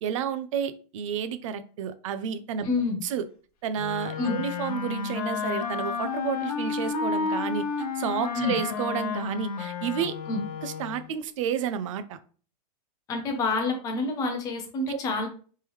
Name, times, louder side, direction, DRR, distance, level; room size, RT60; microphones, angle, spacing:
voice 1, 0.0-2.7 3.0-3.2 3.6-7.7 8.0-10.1 10.6-12.2 14.9-15.0, right 8 dB, 50° right, 12 dB, 0.5 m, -31 dB
voice 2, 2.6-3.0 4.2-4.4 8.3-8.6 10.3-10.4 13.1-15.3, left 3 dB, 15° left, 4 dB, 0.6 m, -28 dB
Wind instrument woodwind instrument, 3.8-11.1, left 5 dB, 65° left, 1.0 m, -31 dB
3.6 x 3.2 x 3.0 m, 0.40 s
supercardioid pair, 170°, 21 cm